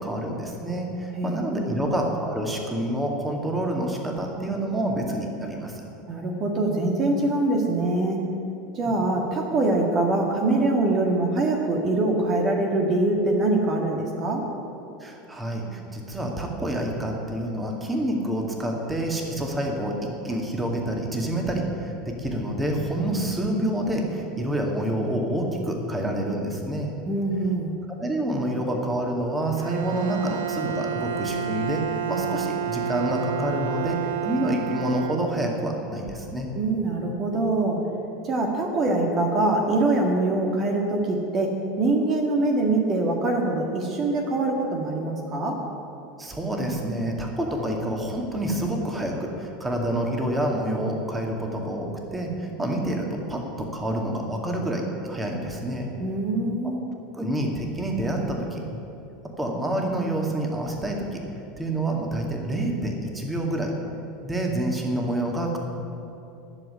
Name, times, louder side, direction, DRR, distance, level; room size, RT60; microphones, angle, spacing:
voice 1, 0.0-5.8 8.9-9.0 15.0-26.9 27.9-31.8 32.1-36.5 46.2-55.9 57.1-58.6 59.4-61.2 61.6-63.7 64.2-65.6, right 1 dB, 15° right, 1 dB, 2.2 m, -28 dB
voice 2, 1.1-1.9 6.1-8.2 8.7-14.4 27.1-27.8 36.5-37.8 38.2-45.6 56.0-56.8, right 2 dB, 40° right, 1 dB, 1.9 m, -24 dB
Bowed string instrument, 29.6-35.7, right 7 dB, 75° right, 0.7 m, -30 dB
12.0 x 7.3 x 9.7 m, 2.8 s
hypercardioid pair, 80°, 0 cm